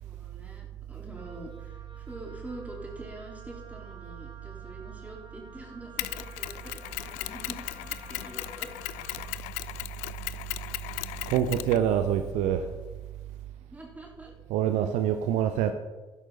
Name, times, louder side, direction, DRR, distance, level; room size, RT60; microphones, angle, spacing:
voice 1, 0.0-8.8 13.7-14.3, right 1 dB, 10° right, 3.9 m, -45 dB
Wind instrument woodwind instrument, 1.1-9.4, right 4 dB, 35° right, 2.4 m, -52 dB
Mechanisms, 6.0-12.3, left 19 dB, 65° left, 0.4 m, -37 dB
voice 2, 11.3-12.7 14.5-15.7, right 9 dB, 60° right, 0.7 m, -25 dB
12.5 x 11.0 x 4.0 m
figure-of-eight pair, 45°, 14 cm